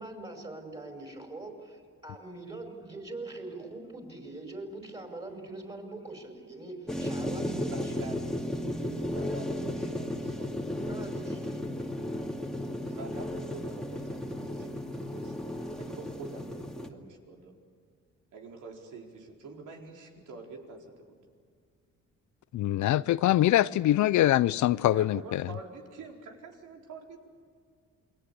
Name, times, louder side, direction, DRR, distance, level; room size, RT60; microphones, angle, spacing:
voice 1, 0.0-8.0 10.9-11.8, right 2 dB, 20° right, 5.2 m, -43 dB
sound 1, 6.9-16.9, left 1 dB, ahead, 2.3 m, -34 dB
voice 2, 7.0-8.2 8.5-11.4 12.8-15.3 15.8-17.5 18.3-21.2 24.9-27.3, right 3 dB, 80° right, 4.6 m, -46 dB
voice 3, 22.6-25.2, left 14 dB, 70° left, 0.6 m, -23 dB
28.5 x 22.0 x 8.5 m
cardioid pair, 90°, 30 cm